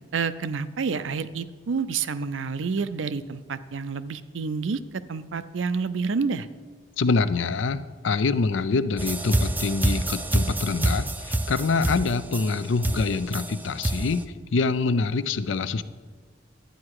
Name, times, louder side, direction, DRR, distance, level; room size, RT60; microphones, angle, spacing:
voice 1, 0.1-4.8 5.1-6.5, right 5 dB, 90° right, 13 dB, 0.5 m, -28 dB
voice 2, 7.0-14.2 14.5-15.8, left 4 dB, 85° left, 14 dB, 0.5 m, -25 dB
sound 1, 9.0-14.2, right 1 dB, 10° right, 0.4 m, -27 dB
11.5 x 8.7 x 4.8 m, 1.5 s
head